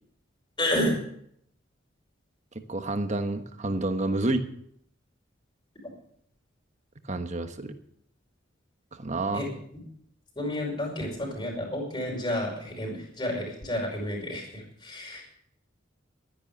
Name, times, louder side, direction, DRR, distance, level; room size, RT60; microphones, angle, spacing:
voice 1, 0.6-1.0 9.3-9.5 10.4-15.2, left 1 dB, 25° left, 0 dB, 5.3 m, -30 dB
voice 2, 2.7-4.4 7.1-7.7 8.9-9.4, right 2 dB, 35° right, 8 dB, 1.2 m, -29 dB
12.5 x 10.5 x 7.2 m, 0.69 s
head